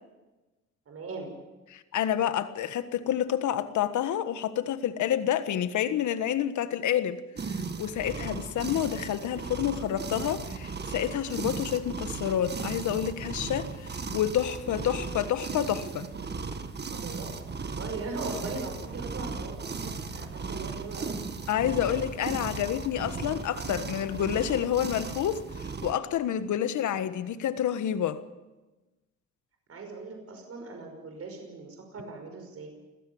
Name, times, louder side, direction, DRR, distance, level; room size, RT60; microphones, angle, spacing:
voice 1, 0.9-1.3 16.9-21.2 29.7-32.7, right 3 dB, 50° right, 5.6 m, -40 dB
voice 2, 1.7-7.2 7.5-16.1 21.5-28.2, left 10 dB, 75° left, 1.5 m, -29 dB
sound 1, 7.3-25.9, right 4 dB, 35° right, 1.7 m, -36 dB
20.5 x 15.0 x 8.7 m
cardioid pair, 90°, 30 cm